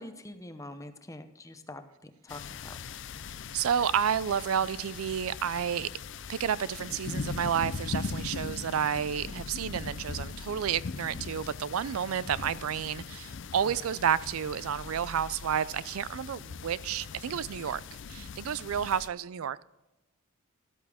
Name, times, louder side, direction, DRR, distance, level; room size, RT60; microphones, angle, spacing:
voice 1, 0.0-2.8, left 1 dB, 15° left, 8 dB, 0.8 m, -45 dB
sound 1, 2.3-19.1, left 5 dB, 55° left, 0.5 m, -40 dB
voice 2, 3.5-5.9 6.3-17.8 18.1-19.6, right 8 dB, 75° right, 19 dB, 0.4 m, -30 dB
13.5 x 12.5 x 3.5 m, 0.98 s
head